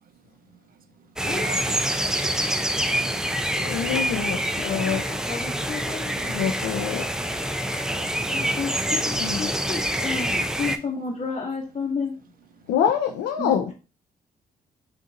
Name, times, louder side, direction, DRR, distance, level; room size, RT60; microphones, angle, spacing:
sound 1, 1.2-10.8, right 1 dB, 5° right, 0.5 m, -26 dB
voice 1, 1.8-3.2 7.3-8.2, right 7 dB, 55° right, 0.5 m, -42 dB
voice 2, 3.6-5.0 6.3-7.3 9.1-9.5 12.7-13.7, left 8 dB, 85° left, 0.5 m, -26 dB
voice 3, 4.3-6.1 8.3-12.1 13.4-13.7, left 4 dB, 35° left, 1.0 m, -32 dB
3.7 x 2.6 x 3.9 m
supercardioid pair, 55°, 18 cm